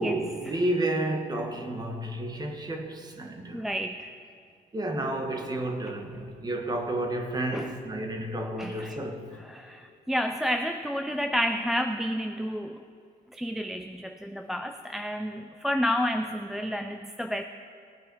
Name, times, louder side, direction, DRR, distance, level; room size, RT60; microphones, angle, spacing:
voice 1, 0.0-3.7 4.7-9.3, right 1 dB, 25° right, 1.4 m, -31 dB
voice 2, 3.5-4.1 7.5-7.7 8.6-9.0 9.4-12.8 13.3-17.4, equal, ahead, 0.4 m, -30 dB
19.0 x 8.8 x 4.7 m
cardioid pair, 120°, 17 cm